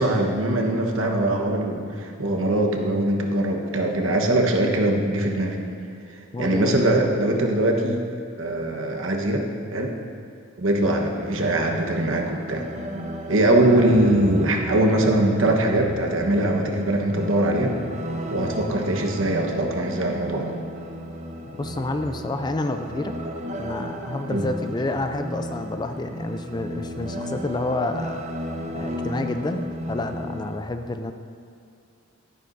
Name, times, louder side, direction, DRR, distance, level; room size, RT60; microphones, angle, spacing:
voice 1, 0.0-5.6 6.4-8.0 8.4-9.5 9.7-9.9 10.6-12.7 13.2-17.8 18.3-20.6 24.3-24.4, right 1 dB, 70° right, 2 dB, 1.2 m, -22 dB
voice 2, 6.3-6.7 21.6-23.1 23.6-28.3 28.7-31.1, left 2 dB, 20° left, 7 dB, 0.3 m, -29 dB
sound 1, 10.8-30.6, equal, 35° right, 0.6 m, -34 dB
12.5 x 11.0 x 2.6 m, 2.5 s
head